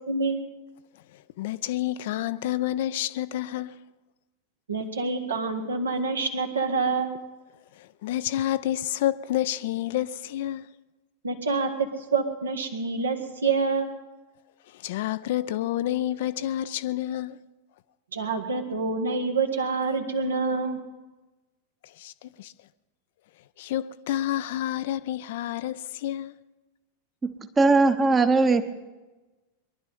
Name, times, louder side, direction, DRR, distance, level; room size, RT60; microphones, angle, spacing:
voice 1, 0.1-0.4 4.7-7.2 11.2-13.9 18.1-20.8, right 4 dB, 70° right, 1.9 m, -27 dB
voice 2, 1.1-3.8 7.8-10.7 14.7-17.4 21.8-22.5 23.6-26.3, left 13 dB, 55° left, 0.5 m, -29 dB
voice 3, 27.2-28.6, right 3 dB, 15° right, 1.1 m, -20 dB
23.0 x 11.5 x 5.4 m
figure-of-eight pair, 90°, 0 cm